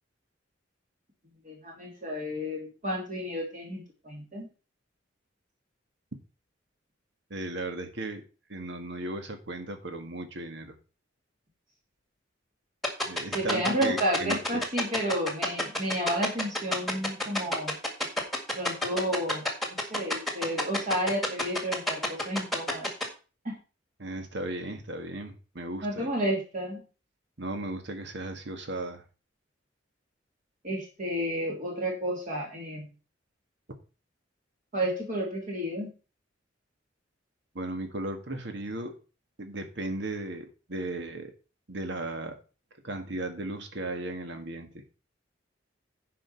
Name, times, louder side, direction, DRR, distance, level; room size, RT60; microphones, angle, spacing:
voice 1, 1.4-4.5 13.3-17.8 18.5-19.4 19.7-22.9 23.4-23.6 25.8-26.8 30.6-32.9 34.7-35.9, equal, 45° right, -2 dB, 3.0 m, -31 dB
voice 2, 7.3-8.2 8.5-10.8 13.1-14.6 24.0-26.1 27.4-29.0 37.6-39.0 39.4-41.3 41.7-42.4 42.8-44.8, right 2 dB, 65° right, 6 dB, 1.7 m, -36 dB
sound 1, 12.8-23.0, left 1 dB, ahead, 1.8 m, -28 dB
10.0 x 5.1 x 5.7 m, 0.34 s
head